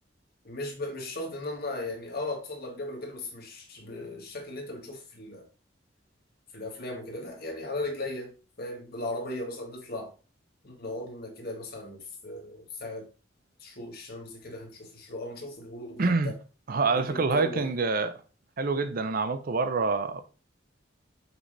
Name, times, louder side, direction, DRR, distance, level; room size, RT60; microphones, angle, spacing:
voice 1, 0.4-5.5 6.5-8.3 8.6-10.1 10.6-13.1 13.6-16.4 16.9-17.7, left 2 dB, 55° left, 1.9 m, -37 dB
voice 2, 16.0-16.3 16.7-18.2 18.6-20.2, right 4 dB, 50° right, 0.6 m, -26 dB
6.2 x 5.1 x 3.3 m
head